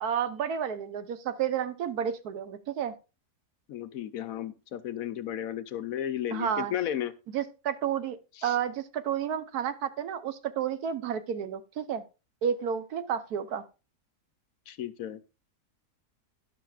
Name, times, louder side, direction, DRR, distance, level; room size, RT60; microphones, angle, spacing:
voice 1, 0.0-2.9 6.3-6.7 7.3-8.2 8.4-12.0 12.4-13.6, right 8 dB, 75° right, 11 dB, 1.3 m, -31 dB
voice 2, 3.7-7.1 8.4-8.6 14.7-15.2, left 11 dB, 65° left, 13 dB, 1.0 m, -34 dB
12.0 x 10.5 x 2.4 m, 0.31 s
omnidirectional pair, 1.7 m